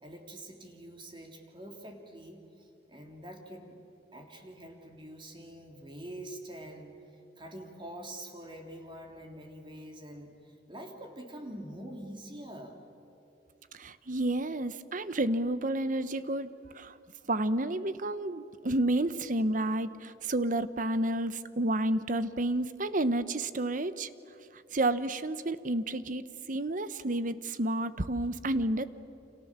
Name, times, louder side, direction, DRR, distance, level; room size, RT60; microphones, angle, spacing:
voice 1, 0.0-3.8 4.1-7.0 7.4-12.8, right 1 dB, 30° right, 3 dB, 3.2 m, -45 dB
voice 2, 13.7-16.5 16.7-17.0 17.3-24.1 24.7-26.2 26.5-28.8, right 1 dB, 50° right, 13 dB, 1.0 m, -30 dB
29.5 x 27.5 x 7.4 m, 2.9 s
head